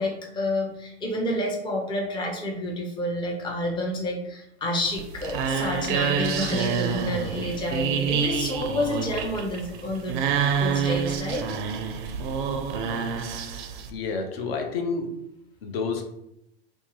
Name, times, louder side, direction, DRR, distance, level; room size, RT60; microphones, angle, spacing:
voice 1, 0.0-10.2 10.6-11.4, left 1 dB, 15° left, -1 dB, 0.5 m, -29 dB
sound 1, 4.8-13.9, right 7 dB, 50° right, 0.4 m, -28 dB
voice 2, 13.9-15.1 15.6-16.0, left 4 dB, 60° left, 4 dB, 0.6 m, -29 dB
2.6 x 2.3 x 2.8 m, 0.81 s
figure-of-eight pair, 85°, 34 cm